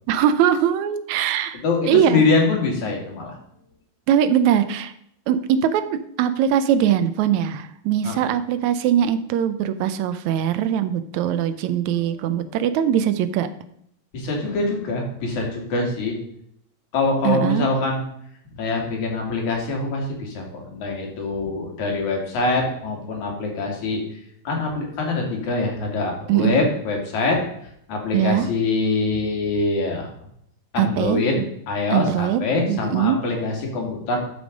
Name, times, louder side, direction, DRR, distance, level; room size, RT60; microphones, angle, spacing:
voice 1, 0.1-2.2 4.1-4.9 5.3-13.5 17.2-17.7 26.3-26.7 28.1-28.5 30.8-31.5 31.9-32.4 32.7-33.2, right 9 dB, 80° right, 11 dB, 2.0 m, -21 dB
voice 2, 1.5-3.4 8.0-8.2 14.1-16.2 16.9-18.0 18.6-24.0 24.5-27.4 27.9-30.1 30.7-31.4 31.7-34.2, left 3 dB, 80° left, 0 dB, 3.6 m, -24 dB
12.0 x 5.3 x 5.2 m, 0.71 s
omnidirectional pair, 3.3 m